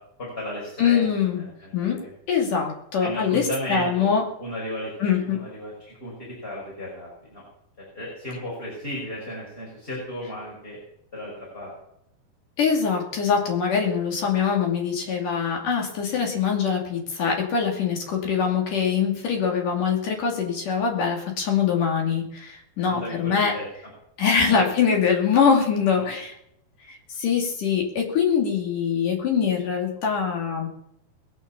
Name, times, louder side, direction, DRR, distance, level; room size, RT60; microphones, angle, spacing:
voice 1, 0.2-2.1 3.0-4.9 5.2-7.4 7.8-10.8 11.1-11.7 22.9-23.7 24.6-24.9 25.9-26.1, left 1 dB, 15° left, -4 dB, 5.3 m, -35 dB
voice 2, 0.8-1.4 1.7-4.3 5.0-5.4 12.6-23.6 24.2-26.4 26.9-30.7, left 6 dB, 55° left, 1 dB, 4.0 m, -23 dB
21.0 x 7.3 x 7.1 m, 0.75 s
omnidirectional pair, 4.5 m